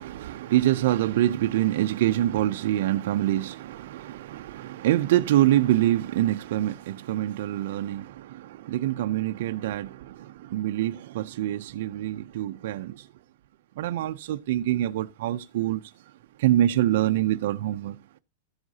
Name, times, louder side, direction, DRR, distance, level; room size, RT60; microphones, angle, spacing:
voice 1, 0.0-13.1 13.8-15.9 16.4-18.0, right 13 dB, 50° right, 0.4 m, -25 dB
13.5 x 7.7 x 2.7 m
supercardioid pair, 180°, 0 cm